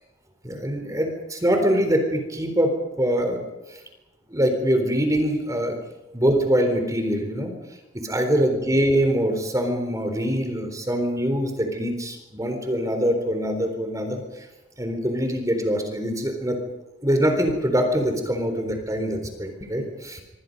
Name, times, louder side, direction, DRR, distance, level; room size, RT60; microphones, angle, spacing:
voice 1, 0.4-2.7 3.0-3.4 3.7-3.8 4.3-5.8 6.1-7.5 7.9-14.2 14.8-16.6 17.0-20.2, equal, 15° right, 5 dB, 3.8 m, -23 dB
26.5 x 25.5 x 5.4 m, 0.99 s
head